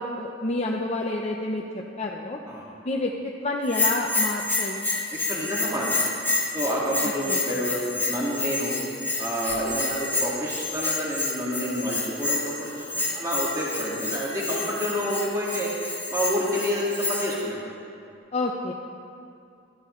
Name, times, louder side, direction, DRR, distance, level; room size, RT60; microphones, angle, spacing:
voice 1, 0.0-2.4 2.8-4.9 7.3-7.4 18.3-18.7, left 2 dB, 35° left, -1 dB, 0.7 m, -29 dB
Bell, 3.7-17.4, left 3 dB, 10° left, 1.6 m, -29 dB
voice 2, 5.1-6.1 6.5-8.8 9.2-15.7 16.1-17.7, equal, 20° right, -6 dB, 2.0 m, -29 dB
17.0 x 13.5 x 3.2 m, 2.5 s
head